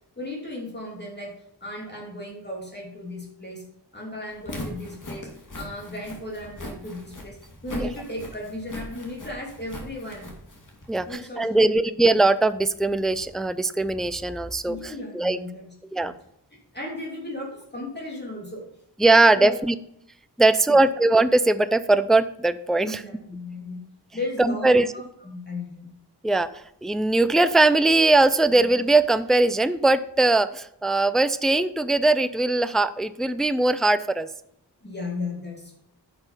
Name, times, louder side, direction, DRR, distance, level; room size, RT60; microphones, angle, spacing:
voice 1, 0.2-1.3 1.6-3.6 3.9-5.3 5.5-7.4 7.6-10.3 11.1-11.7 14.7-16.1 16.7-18.6 19.3-19.5 20.7-20.8 22.8-23.8 24.1-25.9 34.8-35.8, left 2 dB, 25° left, -2 dB, 2.9 m, -35 dB
Walk footsteps, 4.3-11.1, left 1 dB, 50° left, 2.6 m, -39 dB
voice 2, 10.9-15.4 15.9-16.1 19.0-19.7 20.4-23.0 24.4-24.9 26.2-26.5 26.8-34.3, right 2 dB, ahead, 13 dB, 0.4 m, -20 dB
10.5 x 6.3 x 5.7 m, 0.73 s
wide cardioid pair, 80°, 41 cm